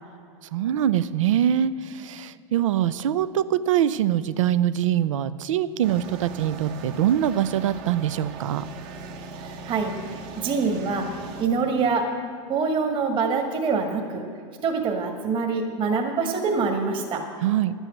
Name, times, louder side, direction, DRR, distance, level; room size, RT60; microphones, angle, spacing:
voice 1, 0.5-8.6 17.4-17.7, right 10 dB, 90° right, 15 dB, 0.6 m, -23 dB
sound 1, 5.8-11.4, right 3 dB, 50° right, 1.5 m, -39 dB
voice 2, 9.4-11.1 11.4-12.1 12.5-14.2 14.6-17.2, right 4 dB, 30° right, 2 dB, 1.8 m, -25 dB
11.5 x 9.0 x 7.8 m, 2.3 s
supercardioid pair, 135°, 16 cm